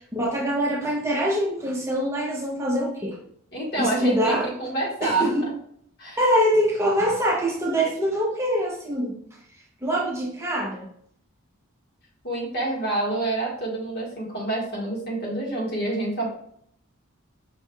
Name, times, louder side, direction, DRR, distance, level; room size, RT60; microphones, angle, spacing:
voice 1, 0.0-3.2 3.8-4.5 5.0-5.4 6.2-9.1 9.8-10.9, equal, 15° right, -2 dB, 0.6 m, -24 dB
voice 2, 3.5-5.5 6.0-6.2 12.2-16.4, right 2 dB, 50° left, -4 dB, 1.6 m, -27 dB
5.3 x 3.3 x 2.3 m, 0.67 s
head